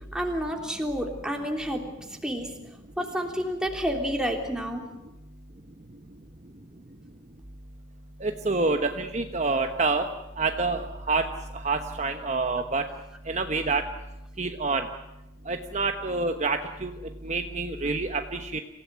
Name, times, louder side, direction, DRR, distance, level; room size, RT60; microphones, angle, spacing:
voice 1, 0.1-2.5 3.0-4.8, equal, 5° right, 1 dB, 3.2 m, -30 dB
voice 2, 8.2-10.0 10.4-11.3 11.5-12.8 13.3-13.8 14.4-14.9 15.5-16.9 17.2-18.6, right 3 dB, 40° right, 5 dB, 1.1 m, -27 dB
26.5 x 17.0 x 9.4 m, 0.95 s
head